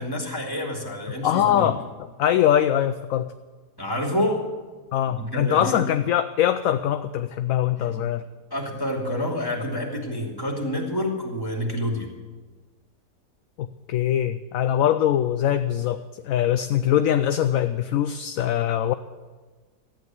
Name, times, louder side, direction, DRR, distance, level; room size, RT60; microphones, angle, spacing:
voice 1, 0.0-1.7 3.8-4.4 5.1-5.8 7.8-8.0 8.5-12.1, left 1 dB, 15° left, -2 dB, 2.9 m, -28 dB
voice 2, 1.2-1.8 2.2-3.3 4.9-8.2 13.6-18.9, left 10 dB, 70° left, 10 dB, 0.9 m, -22 dB
14.0 x 9.1 x 9.4 m, 1.4 s
omnidirectional pair, 1.7 m